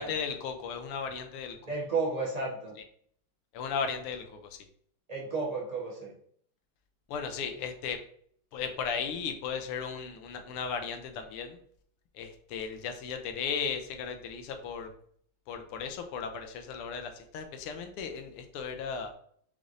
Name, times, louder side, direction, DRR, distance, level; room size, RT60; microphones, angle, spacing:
voice 1, 0.0-1.6 2.8-2.9 3.5-4.6 7.1-8.0 8.5-11.6 12.1-14.9 15.5-19.1, left 6 dB, 85° left, 6 dB, 1.6 m, -36 dB
voice 2, 1.7-2.8 5.1-6.1, right 3 dB, 40° right, -4 dB, 0.5 m, -32 dB
5.3 x 3.1 x 2.5 m, 0.62 s
omnidirectional pair, 2.4 m